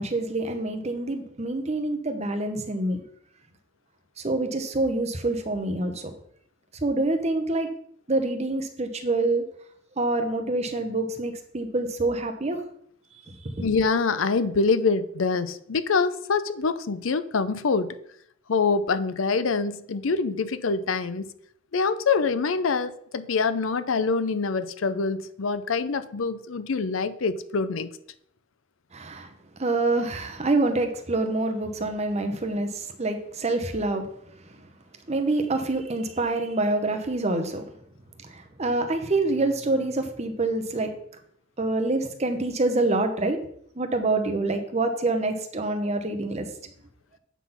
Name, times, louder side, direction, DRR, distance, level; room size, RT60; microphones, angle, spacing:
voice 1, 0.0-3.0 4.2-6.1 6.8-7.7 8.1-9.4 10.0-12.6 28.9-29.3 29.6-34.0 35.1-37.6 38.3-40.9 41.6-43.4 43.8-46.5, right 2 dB, 35° right, 6 dB, 0.9 m, -26 dB
voice 2, 13.6-17.9 18.5-21.3 21.7-27.9, left 4 dB, 80° left, 13 dB, 0.6 m, -25 dB
8.3 x 3.9 x 5.6 m, 0.68 s
head